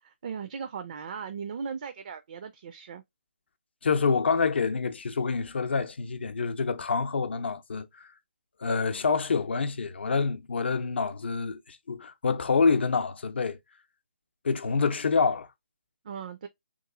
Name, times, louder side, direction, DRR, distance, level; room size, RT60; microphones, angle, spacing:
voice 1, 0.0-3.0 16.0-16.5, right 6 dB, 40° right, 0.4 m, -38 dB
voice 2, 3.8-8.1 8.6-13.6 14.4-15.5, left 5 dB, 65° left, 0.6 m, -27 dB
3.0 x 2.3 x 3.6 m
hypercardioid pair, 155°, 6 cm